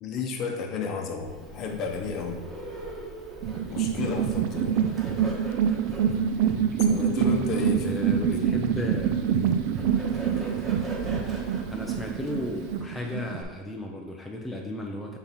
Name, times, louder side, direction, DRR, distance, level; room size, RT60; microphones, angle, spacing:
voice 1, 0.0-2.4 3.7-4.8 6.8-8.5, left 5 dB, 40° left, 3 dB, 0.8 m, -32 dB
Bird, 1.2-12.8, right 1 dB, 20° right, 1.2 m, -41 dB
sound 1, 3.4-13.4, right 8 dB, 65° right, 0.4 m, -26 dB
voice 2, 7.7-9.2 11.7-15.2, left 1 dB, 5° left, 0 dB, 0.5 m, -34 dB
5.8 x 3.9 x 4.1 m, 1.4 s
supercardioid pair, 135°, 0 cm